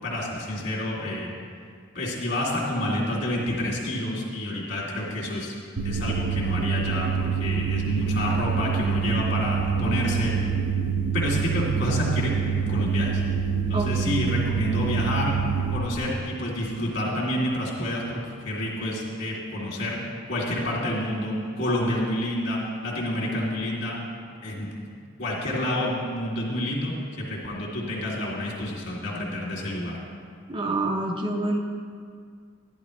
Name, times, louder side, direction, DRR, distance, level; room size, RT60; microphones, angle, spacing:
voice 1, 0.0-1.3 1.9-5.5 5.8-10.3 11.1-13.2 13.7-15.3 15.7-18.2 18.4-20.0 20.3-24.0 24.4-24.7 25.2-26.9 27.2-30.0, left 1 dB, 55° left, -4 dB, 2.5 m, -28 dB
sound 1, 5.8-15.8, right 6 dB, 90° right, 0.8 m, -26 dB
voice 2, 13.7-14.3 30.5-31.6, right 2 dB, 25° right, 1 dB, 0.7 m, -27 dB
12.5 x 11.0 x 3.1 m, 2.1 s
head